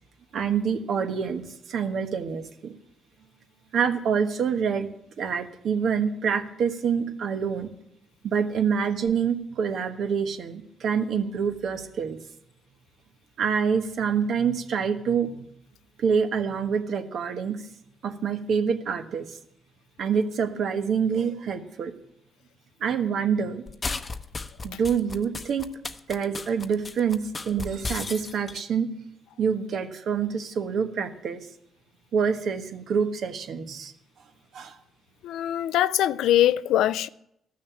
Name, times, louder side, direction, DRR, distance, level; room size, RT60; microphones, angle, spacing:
voice 1, 0.3-1.4 1.7-2.7 3.7-4.9 5.2-7.7 8.2-12.2 13.4-15.4 16.0-17.6 18.0-19.3 20.0-21.9 22.8-23.6 24.6-25.7 26.1-28.9 29.4-31.5 32.1-33.9 34.5-34.8, right 6 dB, 65° right, 1.3 m, -26 dB
sound 1, 23.7-28.6, left 3 dB, 30° left, 0.8 m, -34 dB
voice 2, 35.2-37.1, left 12 dB, 85° left, 0.4 m, -22 dB
14.5 x 6.5 x 8.8 m
cardioid pair, 90°, 0 cm